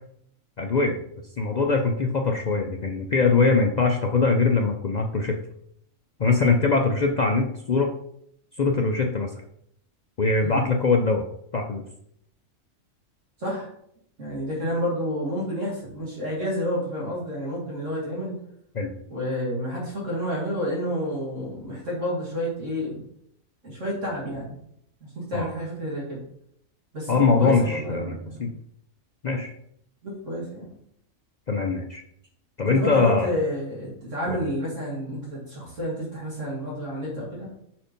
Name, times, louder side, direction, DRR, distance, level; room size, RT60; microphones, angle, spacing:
voice 1, 0.6-1.0 1.4-5.4 6.2-7.9 8.6-9.3 10.2-11.2 11.5-11.8 18.7-18.9 25.3-25.5 27.1-28.1 28.4-28.5 29.2-29.5 31.5-32.0 32.6-33.3 34.3-34.4, left 4 dB, 55° left, 3 dB, 0.4 m, -22 dB
voice 2, 14.2-18.3 19.1-23.0 23.6-24.6 25.1-26.2 26.9-28.5 30.0-30.7 32.7-37.5, equal, 60° right, -5 dB, 2.4 m, -30 dB
5.1 x 4.4 x 5.2 m, 0.70 s
omnidirectional pair, 1.4 m